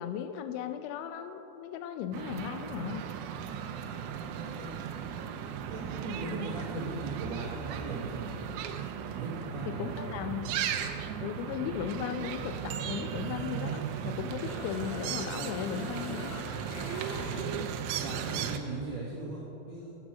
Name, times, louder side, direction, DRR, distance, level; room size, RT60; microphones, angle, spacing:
voice 1, 0.0-3.0 9.7-10.5 11.2-16.4, left 9 dB, 90° left, 9 dB, 3.0 m, -36 dB
sound 1, 2.1-18.6, right 8 dB, 80° right, 2.7 m, -36 dB
voice 2, 4.0-4.7 5.7-8.4 9.1-10.2 17.0-19.9, right 3 dB, 65° right, -8 dB, 1.7 m, -39 dB
Mechanisms, 13.1-14.1 14.4-17.9, left 3 dB, 70° left, 2.3 m, -45 dB
9.8 x 7.5 x 6.1 m, 3.0 s
omnidirectional pair, 5.2 m